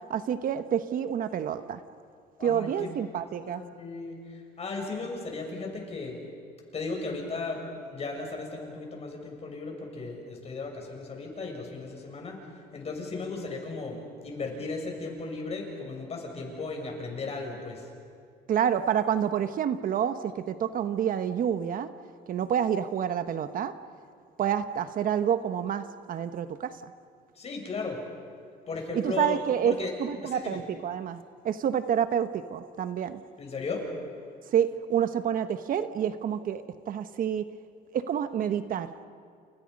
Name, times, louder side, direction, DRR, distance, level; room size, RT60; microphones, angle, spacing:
voice 1, 0.1-1.8 2.4-3.6 18.5-21.9 22.3-23.7 24.4-26.9 28.9-29.7 30.0-33.2 34.5-37.5 37.9-38.9, right 9 dB, 55° right, 10 dB, 1.2 m, -28 dB
voice 2, 2.4-2.9 3.4-6.2 6.7-12.4 12.7-17.9 27.3-28.0 28.7-29.4 29.6-30.6 33.4-33.8, left 3 dB, 40° left, 1 dB, 6.7 m, -36 dB
29.5 x 29.0 x 5.4 m, 2.3 s
cardioid pair, 110°, 17 cm